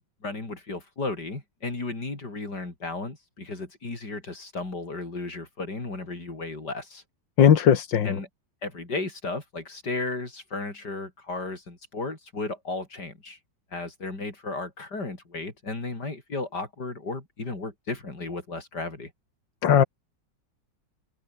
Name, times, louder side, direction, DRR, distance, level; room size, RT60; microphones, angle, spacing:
voice 1, 0.0-7.0 8.0-8.3 8.6-13.4 13.7-19.1, left 3 dB, 65° left, 5.8 m, -34 dB
voice 2, 7.4-8.1 19.6-19.8, left 8 dB, 80° left, 2.2 m, -18 dB
omnidirectional pair, 2.0 m